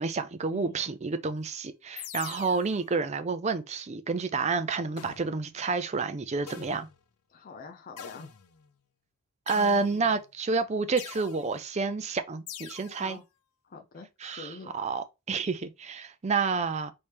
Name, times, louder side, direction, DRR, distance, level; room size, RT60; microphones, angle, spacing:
voice 1, 0.0-6.9 9.5-13.2 14.2-16.9, right 4 dB, 30° right, 0.5 m, -29 dB
voice 2, 0.5-0.8 7.3-8.3 9.5-10.2 12.9-13.2 13.6-14.7, left 3 dB, 40° left, 0.6 m, -46 dB
sound 1, 2.0-2.8 5.0-5.5 6.5-7.0 8.0-8.7 9.5-10.2 11.0-11.5 12.5-13.0, left 9 dB, 90° left, 0.5 m, -44 dB
4.3 x 3.2 x 3.4 m
head